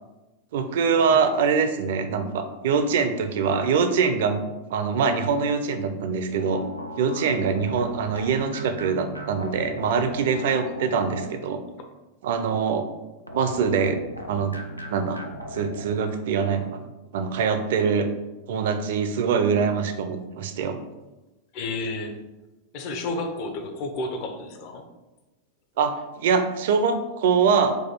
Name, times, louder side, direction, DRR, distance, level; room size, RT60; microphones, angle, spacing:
voice 1, 0.5-4.4 4.7-6.6 7.0-11.6 12.2-12.8 13.3-14.0 14.3-14.6 14.9-15.2 15.5-16.8 17.1-18.1 18.5-20.8 25.8-27.8, right 5 dB, 55° right, 8 dB, 0.4 m, -23 dB
sound 1, 6.3-11.7 13.3-15.8, equal, 90° left, 0.4 m, -37 dB
voice 2, 21.5-22.2 22.7-24.9, left 2 dB, 45° left, 6 dB, 0.6 m, -31 dB
4.4 x 2.3 x 4.3 m, 1.1 s
figure-of-eight pair, 90°, 0 cm